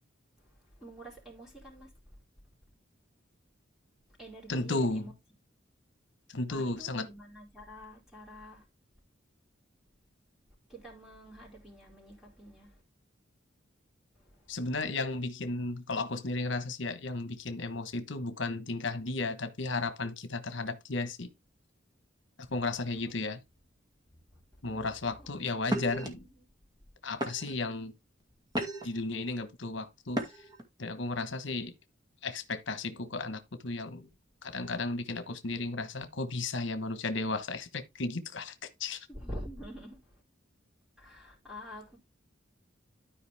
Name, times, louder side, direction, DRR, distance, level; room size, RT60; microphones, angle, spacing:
voice 1, 0.8-1.9 4.2-5.1 6.5-8.6 10.7-12.8 14.2-14.5 24.1-24.4 24.7-24.8 25.2-25.3 25.8-26.3 39.1-40.1 41.0-42.0, equal, ahead, 4.3 m, -47 dB
voice 2, 4.5-5.1 6.3-7.1 14.5-21.3 22.5-23.4 24.6-26.2 27.0-27.9 28.8-30.4 30.8-31.7 32.2-34.1 34.4-38.5 38.8-39.1, left 3 dB, 70° left, 1.2 m, -34 dB
sound 1, 25.7-26.1 26.8-26.9 27.2-27.7 28.2-29.0 30.1-30.6, right 1 dB, 20° right, 2.1 m, -34 dB
13.0 x 5.1 x 3.5 m
head